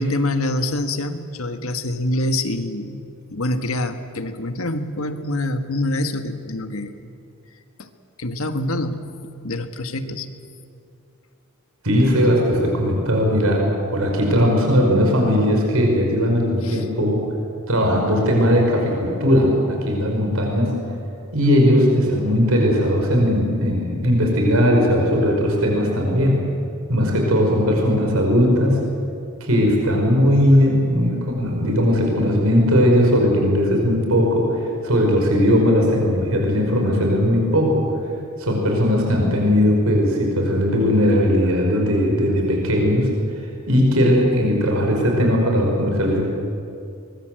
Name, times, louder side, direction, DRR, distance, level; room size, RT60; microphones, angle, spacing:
voice 1, 0.0-3.0 3.3-7.0 7.8-7.9 8.2-9.0 9.4-10.3 16.6-16.8, left 1 dB, 80° left, 8 dB, 1.6 m, -25 dB
voice 2, 11.8-13.7 13.9-17.2 17.7-20.8 21.3-26.4 26.9-28.8 29.4-37.9 38.4-43.1 43.4-46.2, equal, 85° right, 0 dB, 5.3 m, -18 dB
24.0 x 22.0 x 7.8 m, 2.5 s
head